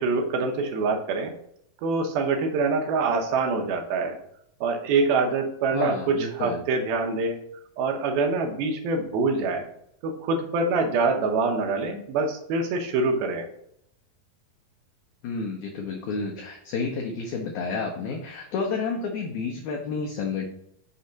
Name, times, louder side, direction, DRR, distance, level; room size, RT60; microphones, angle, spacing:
voice 1, 0.0-1.3 1.8-4.2 4.6-7.4 7.8-9.7 10.0-13.5, right 4 dB, 85° right, 3 dB, 2.8 m, -25 dB
voice 2, 5.7-6.6 15.2-20.5, left 4 dB, 75° left, 0 dB, 1.8 m, -30 dB
6.4 x 3.1 x 5.6 m, 0.73 s
omnidirectional pair, 4.2 m